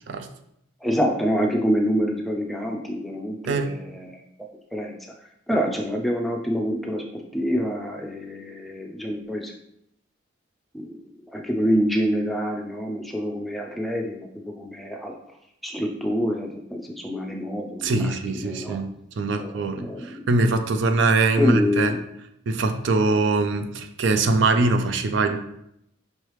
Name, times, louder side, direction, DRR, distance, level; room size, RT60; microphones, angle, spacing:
voice 1, 0.8-4.2 4.7-5.0 5.5-7.0 7.3-9.5 10.7-11.0 11.3-15.1 15.6-18.8 19.4-19.5 19.8-20.2 21.4-22.0, equal, ahead, 0 dB, 0.4 m, -26 dB
voice 2, 3.4-3.8 17.8-18.9 19.2-22.0 22.5-25.4, right 3 dB, 65° right, 7 dB, 0.4 m, -22 dB
5.4 x 3.3 x 3.0 m, 0.77 s
head